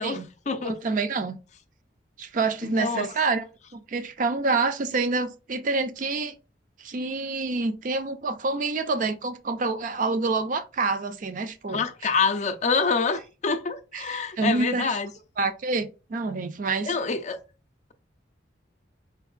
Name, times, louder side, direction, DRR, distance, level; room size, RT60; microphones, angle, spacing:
voice 1, 0.0-0.8 2.6-3.1 11.7-15.1 16.9-17.4, left 4 dB, 40° left, 0.4 m, -26 dB
voice 2, 0.6-1.4 2.2-3.4 3.7-6.4 6.8-11.8 13.9-14.9 15.4-16.9, right 3 dB, 45° right, 0.4 m, -27 dB
4.5 x 2.9 x 2.4 m
head